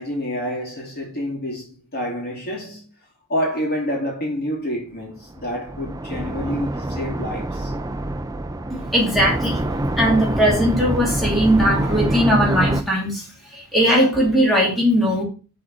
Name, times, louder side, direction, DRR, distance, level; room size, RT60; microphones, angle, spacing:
voice 1, 0.0-2.8 3.3-7.7, equal, 45° left, 2.7 m, -28 dB
sound 1, 5.3-12.8, right 1 dB, 15° right, 0.5 m, -25 dB
voice 2, 8.7-13.2 13.5-15.2, equal, ahead, 2.7 m, -19 dB
6.9 x 4.3 x 6.1 m
head